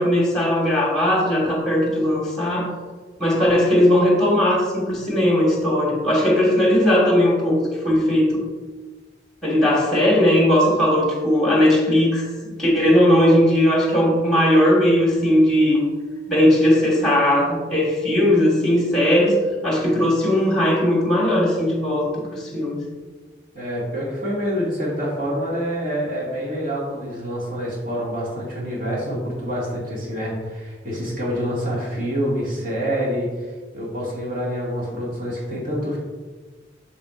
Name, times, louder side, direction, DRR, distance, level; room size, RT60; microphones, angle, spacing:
voice 1, 0.0-2.7 3.2-7.6 7.8-8.4 9.4-12.2 12.6-15.8 16.3-19.4 19.6-22.8, left 1 dB, 5° left, -3 dB, 1.7 m, -18 dB
voice 2, 23.5-36.0, equal, 50° right, -6 dB, 2.1 m, -27 dB
7.2 x 6.7 x 2.5 m, 1.4 s
head